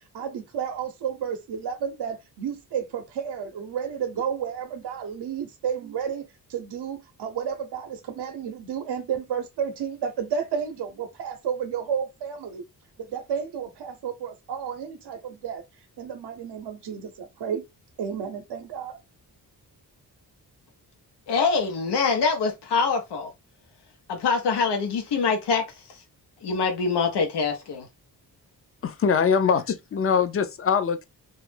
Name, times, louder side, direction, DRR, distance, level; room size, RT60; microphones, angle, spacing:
voice 1, 0.0-6.2 6.5-12.6 13.0-15.6 16.0-17.6 18.0-19.0, right 7 dB, 75° right, 0.7 m, -31 dB
voice 2, 21.3-23.3 24.1-25.6 26.4-27.9, left 5 dB, 90° left, 0.8 m, -24 dB
voice 3, 28.8-31.1, left 6 dB, 35° left, 0.5 m, -23 dB
2.4 x 2.0 x 3.1 m
cardioid pair, 80°, 40 cm